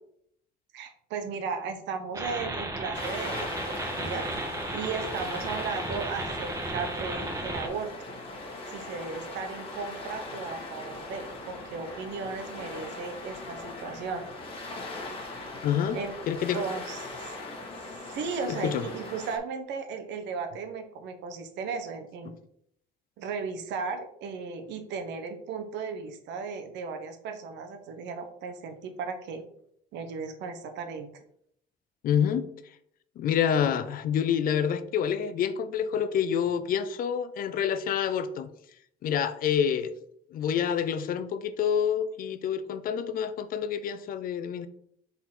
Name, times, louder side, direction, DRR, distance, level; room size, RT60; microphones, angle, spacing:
voice 1, 0.7-4.3 4.7-8.1 8.7-14.3 15.9-16.1 16.5-17.3 18.1-22.3 23.2-29.4 29.9-31.1, right 5 dB, 80° right, 7 dB, 1.1 m, -36 dB
sound 1, 2.1-7.7, right 2 dB, 20° right, 1.4 m, -34 dB
sound 2, 2.9-19.4, left 2 dB, 30° left, 1.6 m, -40 dB
voice 2, 15.6-16.0 16.3-16.6 18.5-18.8 32.0-32.5 33.2-38.5 39.0-39.9 40.3-44.7, left 8 dB, 55° left, 12 dB, 0.6 m, -27 dB
6.1 x 4.2 x 4.3 m, 0.69 s
cardioid pair, 150°, 18 cm